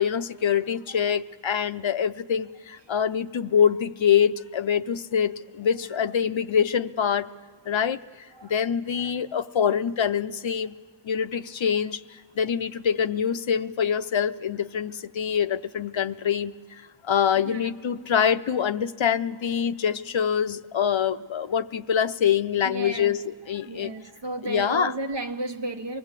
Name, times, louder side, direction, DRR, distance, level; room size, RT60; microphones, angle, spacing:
voice 1, 0.0-7.3 7.7-8.0 8.4-10.7 11.0-16.5 17.0-23.9 24.4-24.9, left 8 dB, 85° left, 0.7 m, -25 dB
voice 2, 22.6-23.2 23.7-26.0, right 2 dB, 65° right, 1.1 m, -33 dB
25.0 x 20.0 x 8.2 m
wide cardioid pair, 45°, 45 cm